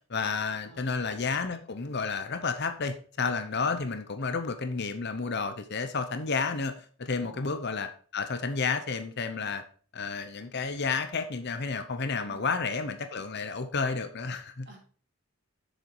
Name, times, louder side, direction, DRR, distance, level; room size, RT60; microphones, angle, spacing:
voice 1, 0.1-9.6 9.9-14.7, left 4 dB, 50° left, 9 dB, 0.8 m, -31 dB
voice 2, 7.2-7.6 12.3-12.5 14.7-14.8, right 2 dB, 50° right, -1 dB, 3.3 m, -51 dB
7.6 x 6.7 x 4.6 m, 0.43 s
head